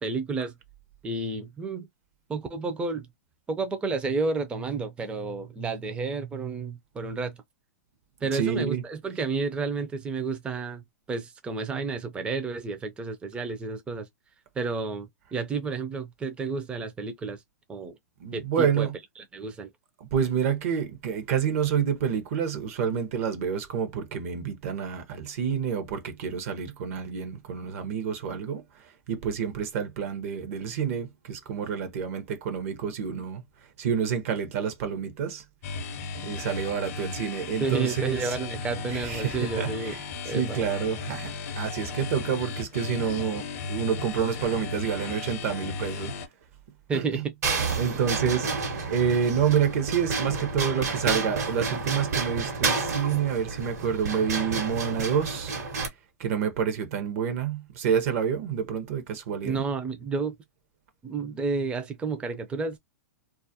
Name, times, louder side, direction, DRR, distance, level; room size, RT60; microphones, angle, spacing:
voice 1, 0.0-0.5 1.0-1.9 2.3-3.1 3.5-7.4 8.2-14.1 14.6-17.4 17.7-17.9 18.3-18.9 19.2-19.7 37.6-40.0 40.2-40.6 46.9-47.3 59.4-60.3 61.0-62.8, right 4 dB, 10° right, 0.4 m, -31 dB
voice 2, 8.3-8.8 18.2-18.9 20.1-28.6 29.1-33.4 33.8-35.4 36.2-38.3 38.9-40.0 40.3-46.1 46.9-47.2 47.8-55.5 56.2-59.7, right 7 dB, 55° right, 0.6 m, -28 dB
sound 1, 35.6-46.3, left 4 dB, 55° left, 0.6 m, -35 dB
sound 2, 47.4-55.9, right 4 dB, 70° right, 1.0 m, -30 dB
2.3 x 2.0 x 2.6 m
hypercardioid pair, 120°, 9 cm